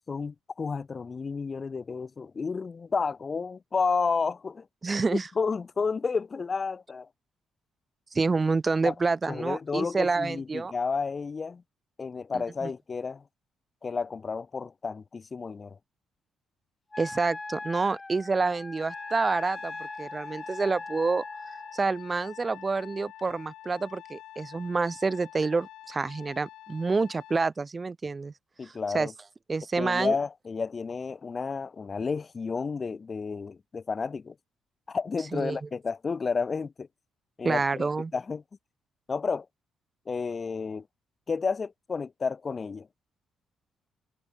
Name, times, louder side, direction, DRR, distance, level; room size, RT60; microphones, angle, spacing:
voice 1, 0.1-4.7 5.1-7.1 8.8-8.9 9.3-11.6 12.0-13.2 13.8-15.8 28.6-29.1 29.8-34.3 34.9-36.9 37.4-37.9 38.1-38.4 39.1-39.5 40.1-40.8 41.3-42.9, left 5 dB, 35° left, 0.8 m, -31 dB
voice 2, 4.8-5.3 8.1-10.7 12.3-12.7 17.0-21.2 21.7-28.3 28.6-29.1 29.5-30.2 35.3-35.7 37.4-38.1, right 4 dB, 30° right, 1.2 m, -28 dB
Wind instrument woodwind instrument, 16.9-21.8, left 3 dB, 20° left, 2.3 m, -40 dB
Trumpet, 18.9-27.5, left 14 dB, 85° left, 3.2 m, -47 dB
cardioid pair, 90°, 0 cm